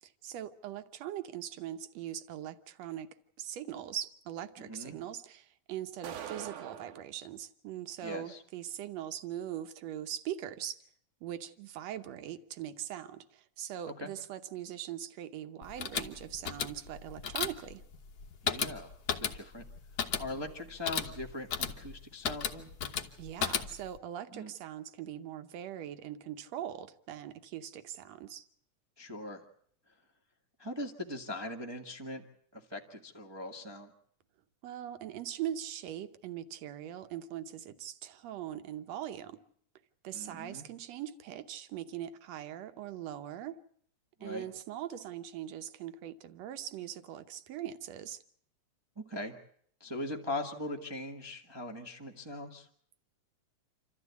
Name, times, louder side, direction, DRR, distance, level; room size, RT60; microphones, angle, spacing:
voice 1, 0.0-3.1 3.4-10.8 11.2-17.8 23.2-28.5 34.6-39.4 40.0-43.6 44.2-48.2, right 11 dB, 70° right, 9 dB, 2.0 m, -41 dB
voice 2, 4.6-5.0 8.0-8.4 14.0-14.1 18.4-18.9 19.2-19.6 20.2-22.7 24.3-24.5 29.0-29.4 30.6-32.2 32.5-33.9 40.1-40.6 44.2-44.4 49.0-49.3 49.8-52.7, left 1 dB, 45° right, 3 dB, 0.3 m, -40 dB
sound 1, 6.0-7.1, right 9 dB, 90° right, 2.8 m, -42 dB
sound 2, 15.6-24.0, left 7 dB, 70° left, 0.9 m, -36 dB
27.5 x 13.5 x 8.2 m, 0.66 s
omnidirectional pair, 3.4 m